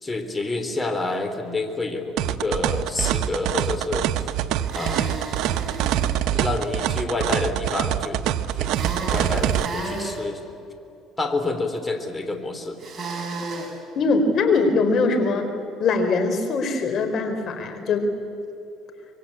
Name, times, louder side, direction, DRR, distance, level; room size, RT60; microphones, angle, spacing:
voice 1, 0.0-4.3 4.7-5.2 6.3-8.2 8.5-10.5 11.2-12.8, left 2 dB, 20° left, 7 dB, 3.3 m, -28 dB
sound 1, 2.2-9.7, right 11 dB, 75° right, 1.0 m, -24 dB
sound 2, 4.6-6.1 8.7-10.2 12.8-13.7, right 3 dB, 35° right, 5.5 m, -32 dB
voice 2, 14.0-15.5 15.8-18.1, left 3 dB, 50° left, 7 dB, 4.3 m, -22 dB
25.5 x 23.0 x 8.7 m, 2.7 s
cardioid pair, 105°, 0 cm